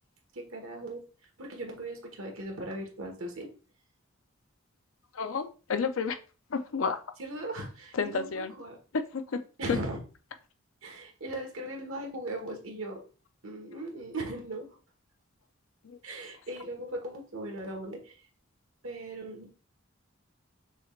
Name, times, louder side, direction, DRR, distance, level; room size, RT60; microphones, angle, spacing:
voice 1, 0.3-1.0 1.4-3.5 7.2-8.8 9.6-10.0 10.8-13.0 13.4-14.7 16.0-18.2 18.8-19.6, right 1 dB, 70° right, 1.3 m, -38 dB
voice 2, 5.1-6.2 6.5-7.0 7.9-8.5 8.9-9.4 9.7-9.8 15.8-16.0, left 5 dB, 70° left, 0.5 m, -30 dB
6.3 x 3.2 x 2.4 m
head